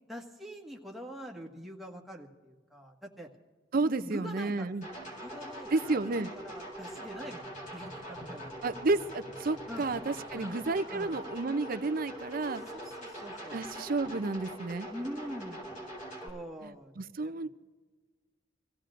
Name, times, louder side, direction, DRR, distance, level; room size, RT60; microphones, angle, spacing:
voice 1, 0.1-3.3 4.0-4.7 5.2-8.5 9.7-10.1 10.4-11.2 12.4-13.6 14.9-15.8 16.2-16.9 17.2-17.5, equal, ahead, -1 dB, 1.6 m, -44 dB
voice 2, 3.7-4.8 5.7-6.3 8.6-12.6 13.5-14.9 17.0-17.5, right 3 dB, 50° right, 11 dB, 0.6 m, -31 dB
sound 1, 4.8-16.3, right 1 dB, 45° left, 4.1 m, -43 dB
27.0 x 16.0 x 2.5 m, 1.4 s
head